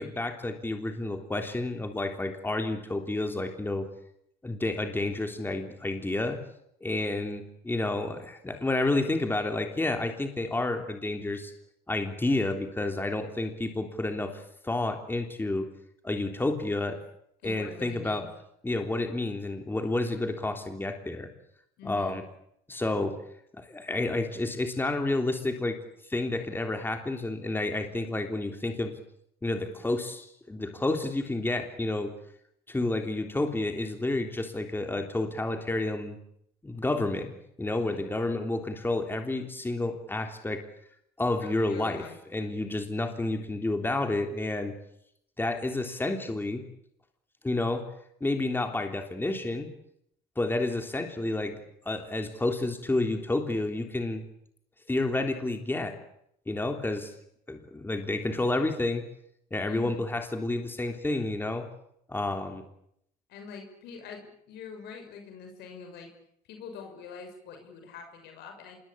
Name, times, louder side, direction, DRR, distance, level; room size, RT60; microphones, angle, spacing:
voice 1, 0.0-3.9 4.4-6.4 6.8-11.5 11.9-15.7 16.0-17.0 17.4-18.3 18.6-21.3 21.8-22.2 22.7-23.2 23.5-25.8 26.1-29.0 29.4-32.1 32.7-36.2 36.6-37.3 37.6-40.6 41.2-42.0 42.3-44.7 45.4-46.6 47.4-47.9 48.2-49.7 50.4-51.6 51.9-54.3 54.9-56.0 56.5-57.1 57.5-59.1 59.5-61.7 62.1-62.6, left 2 dB, 10° left, 5 dB, 3.4 m, -30 dB
voice 2, 17.4-18.3 21.8-22.1 37.7-38.0 41.4-42.2 59.7-60.0 63.3-66.1 66.5-68.8, left 6 dB, 80° left, 5 dB, 6.5 m, -44 dB
26.5 x 21.5 x 8.7 m, 0.74 s
cardioid pair, 110°, 17 cm